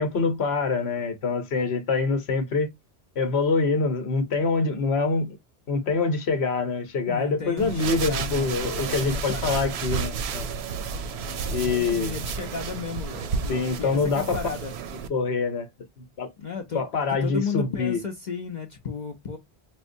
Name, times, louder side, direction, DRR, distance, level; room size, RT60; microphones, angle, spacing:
voice 1, 0.0-2.7 3.2-5.4 5.7-10.5 11.5-12.1 13.5-14.4 15.1-15.7 16.0-16.3 16.7-18.0, left 4 dB, 80° left, 1.1 m, -25 dB
voice 2, 7.1-9.8 11.2-14.7 16.4-16.8 17.1-19.4, left 5 dB, 50° left, 0.8 m, -34 dB
sound 1, 7.6-15.1, right 5 dB, 85° right, 0.8 m, -31 dB
4.4 x 2.1 x 2.6 m
omnidirectional pair, 1.1 m